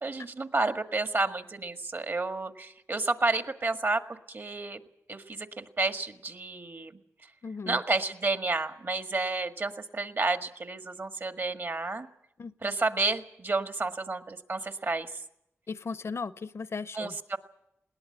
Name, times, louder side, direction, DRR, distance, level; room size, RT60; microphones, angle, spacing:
voice 1, 0.0-4.8 5.1-6.9 7.7-12.1 12.6-15.2 16.9-17.4, right 3 dB, 50° right, 1.7 m, -31 dB
voice 2, 7.4-7.8 12.4-12.7 15.7-17.2, left 4 dB, 65° left, 0.7 m, -37 dB
21.0 x 18.0 x 8.9 m
wide cardioid pair, 75°, 5 cm